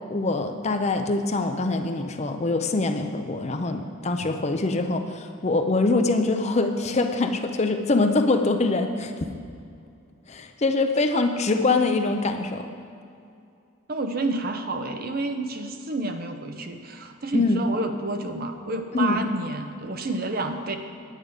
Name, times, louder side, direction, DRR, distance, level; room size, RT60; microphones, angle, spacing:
voice 1, 0.0-9.1 10.3-12.7 17.3-17.6 18.9-19.2, left 3 dB, 30° left, 6 dB, 0.6 m, -24 dB
voice 2, 13.9-20.8, right 2 dB, 45° right, 6 dB, 0.7 m, -29 dB
9.5 x 9.2 x 5.0 m, 2.4 s
head